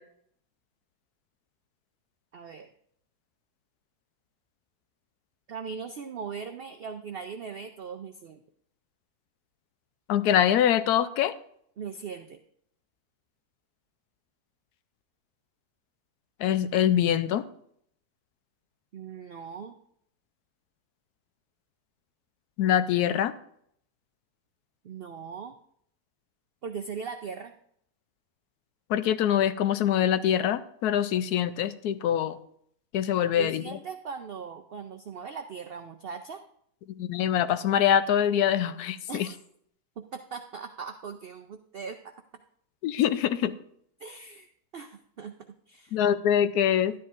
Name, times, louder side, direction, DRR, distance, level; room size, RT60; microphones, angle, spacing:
voice 1, 2.3-2.7 5.5-8.4 11.8-12.4 18.9-19.8 24.8-25.5 26.6-27.5 33.2-36.4 39.1-39.4 40.0-42.1 44.0-45.3 45.7-46.0, right 6 dB, 75° right, 7 dB, 0.5 m, -39 dB
voice 2, 10.1-11.3 16.4-17.4 22.6-23.3 28.9-32.4 32.9-33.8 37.0-39.3 42.8-43.6 45.9-46.9, left 10 dB, 80° left, 13 dB, 1.1 m, -24 dB
12.0 x 10.0 x 2.5 m, 0.68 s
omnidirectional pair, 1.7 m